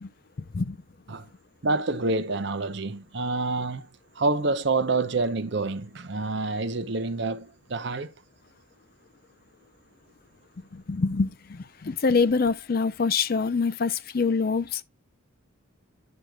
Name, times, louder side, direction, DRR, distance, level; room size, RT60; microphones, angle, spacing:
voice 1, 0.4-0.8 10.7-14.8, left 4 dB, 45° left, 0.5 m, -25 dB
voice 2, 1.6-3.9 4.2-8.1, right 3 dB, 60° right, 0.7 m, -27 dB
10.5 x 6.3 x 2.2 m
head